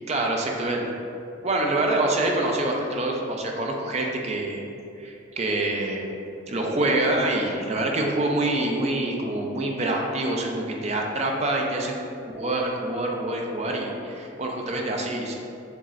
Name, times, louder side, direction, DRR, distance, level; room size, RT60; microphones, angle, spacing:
voice 1, 0.1-0.9 1.4-4.7 5.0-6.1 6.5-11.9 12.3-15.3, right 2 dB, 35° right, 0 dB, 0.5 m, -26 dB
7.3 x 2.9 x 2.4 m, 2.7 s
head